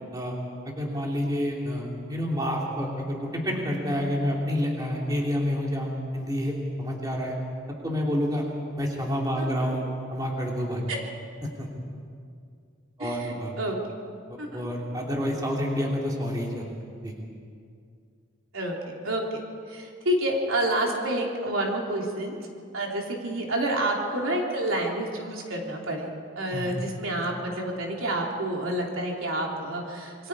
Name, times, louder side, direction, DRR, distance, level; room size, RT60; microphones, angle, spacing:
voice 1, 0.6-7.3 7.8-8.4 8.8-10.8 11.6-11.7 13.0-13.5 14.3-16.7 17.0-17.2 26.5-26.7, equal, 20° right, -2 dB, 2.9 m, -28 dB
voice 2, 9.4-9.8 10.9-11.0 13.0-13.8 14.4-14.7 18.5-18.8 19.0-19.2 19.7-22.4 22.7-30.3, right 1 dB, 80° right, -1 dB, 3.4 m, -29 dB
27.0 x 23.0 x 4.9 m, 2.3 s
head